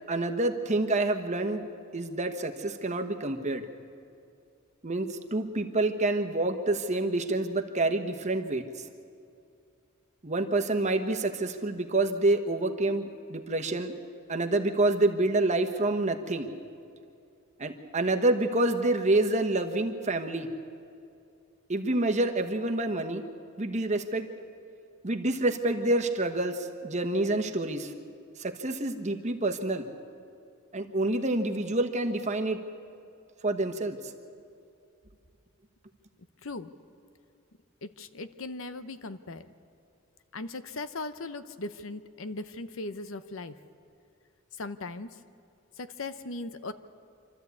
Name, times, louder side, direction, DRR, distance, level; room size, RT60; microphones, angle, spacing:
voice 1, 0.1-1.7 1.9-3.7 4.8-8.6 10.2-13.9 14.3-16.5 17.6-20.5 21.7-23.2 23.6-24.3 25.0-27.9 28.4-29.8 30.7-32.6 33.4-34.0, right 2 dB, 35° right, 6 dB, 1.2 m, -27 dB
voice 2, 36.4-36.7 37.8-39.4 40.3-43.5 44.6-45.1 45.8-46.7, left 2 dB, 65° left, 12 dB, 0.8 m, -38 dB
26.0 x 13.0 x 8.4 m, 2.5 s
head